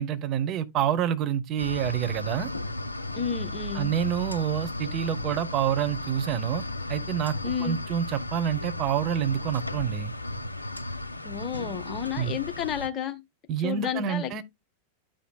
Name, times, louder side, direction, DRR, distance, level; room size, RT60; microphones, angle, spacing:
voice 1, 0.0-2.5 3.7-6.6 6.9-10.1 12.2-12.4 13.5-14.4, right 9 dB, 35° right, 0.8 m, -28 dB
sound 1, 1.6-12.9, left 2 dB, 85° left, 0.4 m, -35 dB
voice 2, 3.1-3.9 7.4-7.8 11.2-13.2 13.6-14.4, left 7 dB, 30° left, 1.1 m, -31 dB
12.5 x 5.1 x 2.2 m
figure-of-eight pair, 90°, 0 cm